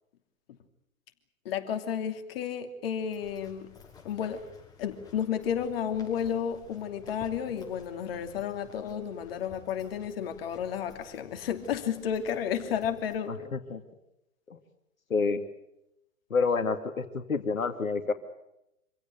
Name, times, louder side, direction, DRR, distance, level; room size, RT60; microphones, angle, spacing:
voice 1, 1.4-3.7 4.0-4.4 4.8-13.4, left 8 dB, 45° left, 7 dB, 2.9 m, -32 dB
sound 1, 2.9-13.2, left 6 dB, 10° left, 6.0 m, -53 dB
voice 2, 13.3-13.8 14.5-14.6 15.1-15.4 16.3-18.1, left 4 dB, 75° left, 7 dB, 2.4 m, -28 dB
26.5 x 17.0 x 9.3 m, 0.84 s
figure-of-eight pair, 120°, 41 cm